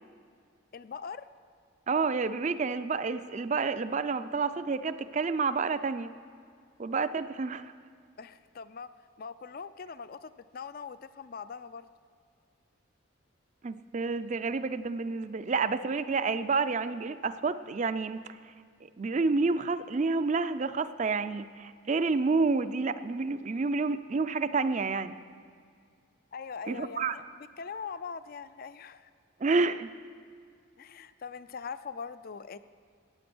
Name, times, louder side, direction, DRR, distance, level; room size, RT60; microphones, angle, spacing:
voice 1, 0.7-1.3 8.2-8.9 9.2-11.9 26.3-29.1 30.8-32.6, left 5 dB, 45° left, 14 dB, 0.4 m, -42 dB
voice 2, 1.9-6.1 6.8-7.7 13.6-18.2 18.8-25.2 26.7-27.2 29.4-29.9, right 4 dB, 35° right, 12 dB, 0.4 m, -29 dB
15.5 x 9.4 x 6.1 m, 2.2 s
head